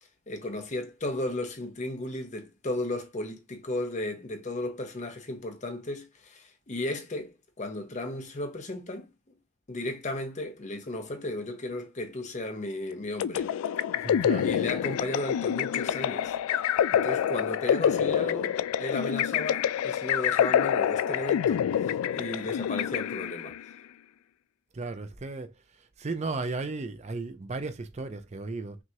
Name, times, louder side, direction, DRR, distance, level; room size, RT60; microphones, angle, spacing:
voice 1, 0.3-9.1 9.7-13.5 14.4-16.4 16.9-23.6, left 1 dB, 35° left, 0.7 m, -35 dB
sound 1, 13.2-23.6, left 9 dB, 90° left, 0.3 m, -27 dB
voice 2, 14.0-14.5 24.7-25.5 26.0-28.8, right 3 dB, 30° right, 0.4 m, -34 dB
6.0 x 2.4 x 2.8 m
head